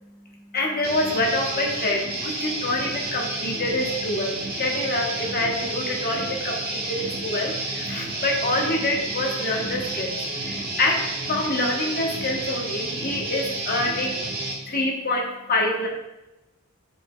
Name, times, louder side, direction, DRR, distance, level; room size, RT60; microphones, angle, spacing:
voice 1, 0.0-15.9, left 2 dB, 40° left, 0 dB, 1.1 m, -26 dB
Guitar, 0.8-14.5, right 2 dB, 45° right, 1.4 m, -31 dB
7.9 x 5.3 x 2.3 m, 0.95 s
head